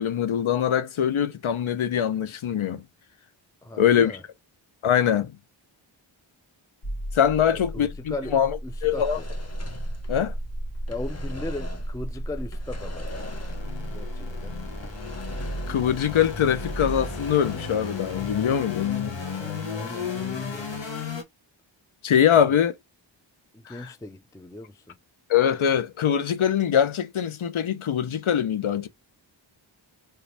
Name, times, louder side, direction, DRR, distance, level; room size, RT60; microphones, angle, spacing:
voice 1, 0.0-2.8 3.8-4.2 4.8-5.3 7.1-8.5 8.8-9.2 10.1-10.3 15.7-19.2 22.0-22.7 23.7-23.9 25.3-28.9, left 9 dB, 80° left, 0.6 m, -23 dB
voice 2, 3.6-4.2 7.4-8.4 8.6-9.3 10.9-13.2 13.9-14.6 19.3-20.9 22.3-22.6 23.5-25.0, left 2 dB, 10° left, 0.4 m, -38 dB
sound 1, 6.8-21.2, left 2 dB, 65° left, 1.4 m, -33 dB
sound 2, 8.7-10.5 10.7-12.0 12.5-13.9 14.1-14.2 14.8-16.1 16.4-18.2, left 3 dB, 30° left, 0.8 m, -43 dB
3.3 x 3.2 x 2.6 m
wide cardioid pair, 45°, 48 cm